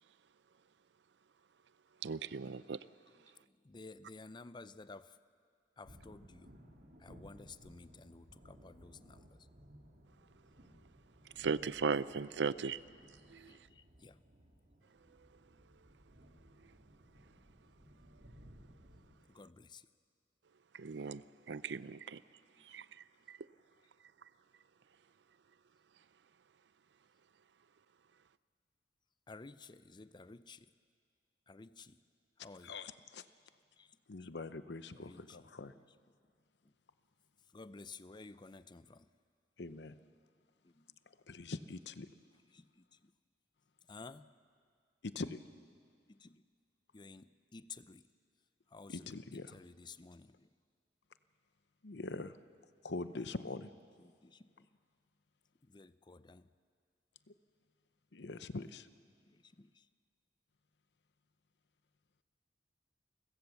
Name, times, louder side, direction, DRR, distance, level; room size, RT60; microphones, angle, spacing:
voice 1, 2.0-2.8 11.4-12.8 13.3-13.6 20.7-22.2 22.6-22.9 23.3-23.4, right 5 dB, 80° right, 0.5 m, -37 dB
voice 2, 3.2-5.2 5.8-6.5 7.0-9.4 12.6-12.8 13.2-14.2 19.3-19.9 21.9-22.0 22.6-22.7 29.3-30.7 31.5-32.0 32.4-32.8 33.8-34.0 34.9-36.0 37.5-39.1 40.6-41.0 42.4-43.1 43.9-44.3 46.1-46.4 46.9-48.1 48.7-50.5 52.9-53.4 54.0-54.5 55.6-56.5 59.4-59.9, left 3 dB, 25° left, 0.5 m, -54 dB
sound 1, 5.8-19.1, equal, 60° right, 2.4 m, -60 dB
voice 3, 32.6-33.2 34.1-35.7 39.6-39.9 41.3-42.1 45.0-45.4 48.9-49.5 51.8-52.4 52.8-53.7 57.3-57.4 58.1-58.9, left 3 dB, 75° left, 0.8 m, -43 dB
29.5 x 16.0 x 7.1 m
head